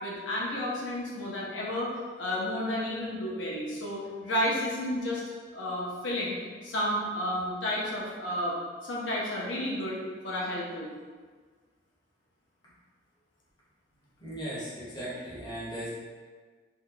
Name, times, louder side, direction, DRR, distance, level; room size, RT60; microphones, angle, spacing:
voice 1, 0.0-1.9 2.2-5.2 5.5-6.4 6.6-8.6 8.8-10.0 10.2-10.9, left 1 dB, 85° left, -5 dB, 0.6 m, -31 dB
voice 2, 14.2-15.9, right 1 dB, 25° left, -9 dB, 1.1 m, -37 dB
2.9 x 2.2 x 3.7 m, 1.5 s
head